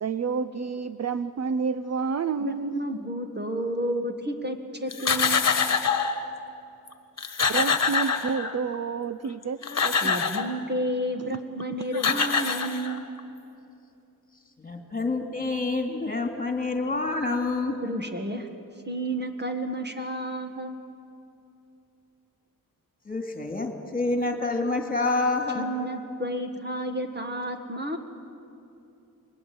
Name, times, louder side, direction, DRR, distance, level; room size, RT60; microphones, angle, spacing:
voice 1, 0.0-2.8 7.5-10.1, right 5 dB, 45° right, 12 dB, 0.6 m, -29 dB
voice 2, 2.4-5.5 10.0-13.0 17.8-18.5 18.9-20.8 25.6-28.0, right 1 dB, 30° right, 5 dB, 1.8 m, -31 dB
sound 1, 4.9-6.2 6.9-7.0 7.2-8.7 9.4-10.6 11.6-11.7 11.9-13.2, left 5 dB, 45° left, 1.6 m, -25 dB
voice 3, 14.6-17.8 23.1-25.7, left 3 dB, 25° left, 4 dB, 2.7 m, -27 dB
29.0 x 22.0 x 8.7 m, 2.8 s
wide cardioid pair, 135°, 36 cm